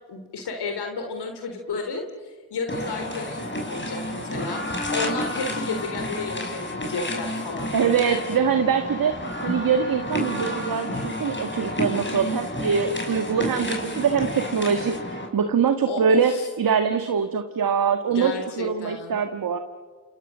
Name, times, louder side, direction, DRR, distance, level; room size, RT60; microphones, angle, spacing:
voice 1, 0.1-8.2 15.9-16.5 18.1-19.1, left 3 dB, 65° left, 4 dB, 3.5 m, -32 dB
sound 1, 2.7-15.3, left 1 dB, 25° left, 6.4 m, -30 dB
voice 2, 7.7-19.6, right 6 dB, 55° right, 7 dB, 1.8 m, -23 dB
28.5 x 28.0 x 6.3 m, 1.5 s
supercardioid pair, 45°, 42 cm